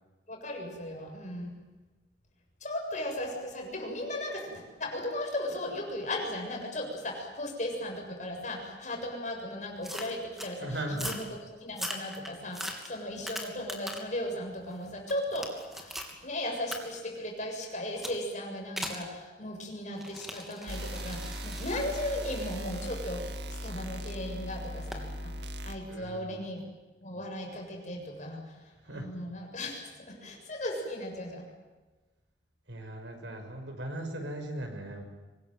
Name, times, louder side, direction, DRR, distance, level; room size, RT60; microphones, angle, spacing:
voice 1, 0.3-1.6 2.6-11.2 11.6-15.5 15.7-16.0 16.2-25.3 25.6-26.6 27.0-31.4, left 1 dB, 45° left, 2 dB, 7.2 m, -36 dB
sound 1, 9.8-10.5 10.9-11.3 11.7-14.2 14.6-16.1 16.7-16.8 18.0-18.2 18.8-19.1 19.9-23.9 24.9-25.1, equal, ahead, 3.0 m, -40 dB
voice 2, 10.6-11.2 25.9-26.4 28.8-29.1 32.7-35.1, right 1 dB, 90° right, 4 dB, 5.9 m, -38 dB
sound 2, 20.7-25.8, equal, 70° right, 2.1 m, -38 dB
25.0 x 21.0 x 9.3 m, 1.2 s
head